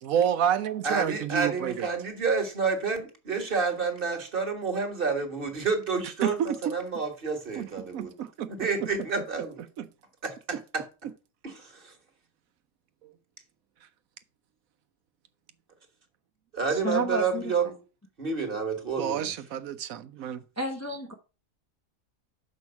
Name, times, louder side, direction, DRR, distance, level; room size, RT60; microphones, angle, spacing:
voice 1, 0.0-1.9 6.2-6.7 7.6-8.5 9.8-9.9 13.0-13.1 19.0-20.4, right 9 dB, 85° right, 1.1 m, -29 dB
voice 2, 0.8-8.1 8.5-9.6 10.2-10.8 11.4-11.9 16.5-17.8 18.2-19.3, right 5 dB, 40° right, 1.8 m, -29 dB
voice 3, 16.7-17.5 20.6-21.1, right 1 dB, 15° left, 0.8 m, -31 dB
6.3 x 5.3 x 6.9 m
omnidirectional pair, 1.4 m